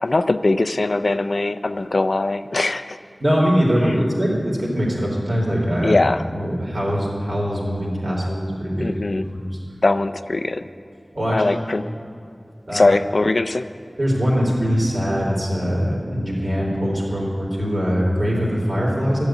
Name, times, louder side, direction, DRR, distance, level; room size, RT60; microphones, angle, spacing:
voice 1, 0.0-3.0 5.8-6.2 8.8-9.2 9.8-10.7 11.3-11.9 12.7-13.7, left 2 dB, 65° left, 11 dB, 0.4 m, -21 dB
voice 2, 3.2-6.0 6.3-8.9 9.3-9.6 11.1-11.4 12.7-12.8 14.0-19.3, equal, 65° right, -4 dB, 3.8 m, -22 dB
12.5 x 7.2 x 9.1 m, 2.3 s
wide cardioid pair, 60°, 0 cm